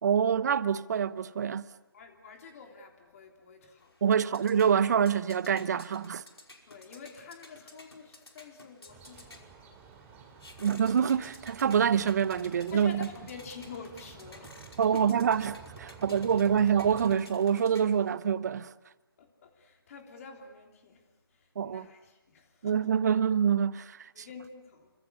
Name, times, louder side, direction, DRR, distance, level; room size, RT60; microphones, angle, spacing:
voice 1, 0.0-1.7 4.0-6.2 10.6-13.1 14.8-15.5 15.8-18.7 21.6-21.9 22.6-24.3, right 7 dB, 45° right, 1.0 m, -26 dB
voice 2, 1.9-3.9 6.7-10.5 12.7-15.2 15.9-16.2 19.2-22.9 24.1-24.9, left 5 dB, 35° left, 3.4 m, -48 dB
sound 1, 3.8-18.3, left 2 dB, 90° left, 5.2 m, -54 dB
sound 2, 8.9-17.1, right 6 dB, 15° right, 2.8 m, -51 dB
29.5 x 25.0 x 6.9 m
figure-of-eight pair, 150°, 13 cm